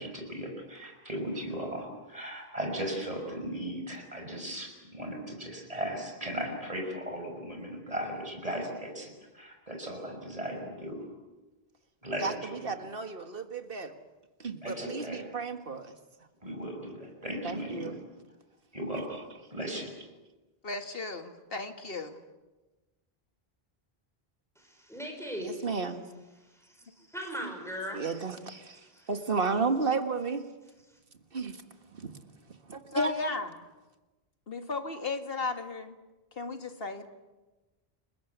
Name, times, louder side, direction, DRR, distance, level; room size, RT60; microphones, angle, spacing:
voice 1, 0.0-11.0 12.0-12.7 14.6-15.3 16.4-18.0 18.7-19.9, right 1 dB, 35° right, 2 dB, 5.9 m, -37 dB
voice 2, 12.2-14.0 14.4-16.0 17.4-18.0 25.4-26.1 27.9-28.8 29.1-30.5 31.3-31.6 31.9-32.2 32.7-33.1, right 4 dB, 60° right, 7 dB, 2.0 m, -32 dB
voice 3, 20.6-22.2 32.9-33.6 34.5-36.0 36.4-37.1, left 3 dB, 65° left, 7 dB, 2.2 m, -35 dB
voice 4, 24.6-25.6 26.4-26.8 27.1-28.0 28.8-29.1, equal, 5° left, 2 dB, 4.8 m, -39 dB
30.0 x 21.0 x 8.2 m, 1.1 s
omnidirectional pair, 1.1 m